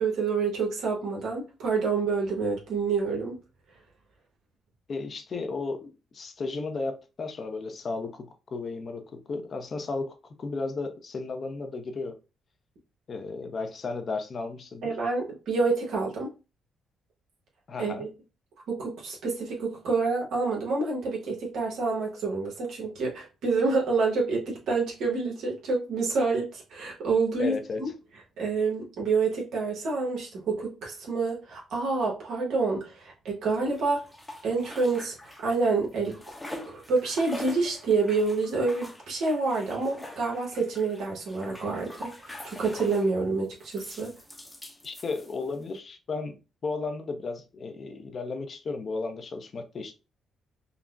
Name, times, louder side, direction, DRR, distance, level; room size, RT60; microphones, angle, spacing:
voice 1, 0.0-3.4 14.8-16.3 17.8-18.1 18.7-27.9 28.4-34.1 34.4-36.2 36.7-44.1, right 4 dB, 80° right, 1.0 m, -28 dB
voice 2, 4.9-10.1 10.4-12.2 13.1-14.9 17.7-18.0 27.4-27.8 44.8-49.9, left 3 dB, 45° left, 0.6 m, -34 dB
sound 1, 33.7-35.7 35.9-43.1 43.6-45.6, left 1 dB, 10° left, 0.7 m, -44 dB
3.7 x 2.1 x 2.3 m
cardioid pair, 90°, 0 cm